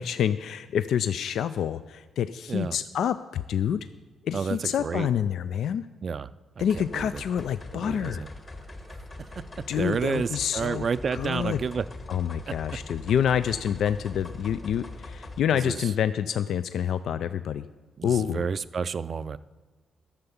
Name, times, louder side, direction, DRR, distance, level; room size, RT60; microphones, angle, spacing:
voice 1, 0.0-3.9 4.2-5.9 6.6-8.2 9.7-10.9 11.1-11.6 12.1-17.6 18.0-18.4, left 9 dB, 75° left, 12 dB, 0.3 m, -27 dB
voice 2, 4.3-5.1 6.0-6.3 6.6-7.2 7.7-8.3 8.9-9.0 9.7-11.9 15.6-15.9 18.0-19.4, right 5 dB, 40° right, 15 dB, 0.4 m, -30 dB
sound 1, 6.6-15.4, left 2 dB, 30° left, 1.3 m, -42 dB
11.5 x 6.8 x 7.1 m, 1.3 s
cardioid pair, 125°, 0 cm